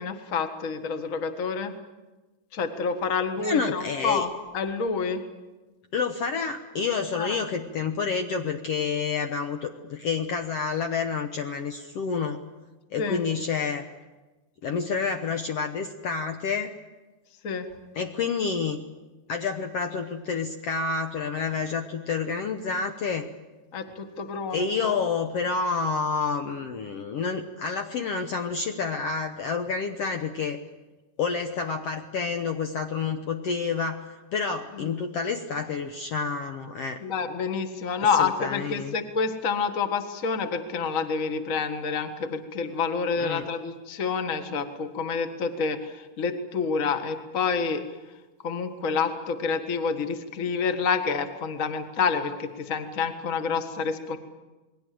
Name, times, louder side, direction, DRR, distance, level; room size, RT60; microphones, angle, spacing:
voice 1, 0.0-1.7 2.5-5.2 7.1-7.4 13.0-13.2 17.4-17.7 23.7-25.0 34.8-34.9 37.0-47.8 48.4-54.2, left 5 dB, 35° left, 7 dB, 1.4 m, -28 dB
voice 2, 3.4-4.2 5.9-12.4 12.9-13.9 14.6-16.7 17.9-18.8 19.3-23.3 24.5-30.6 31.2-37.0 38.1-38.9 43.2-43.5, left 5 dB, 60° left, 5 dB, 1.8 m, -29 dB
28.5 x 21.0 x 7.7 m, 1.2 s
omnidirectional pair, 3.7 m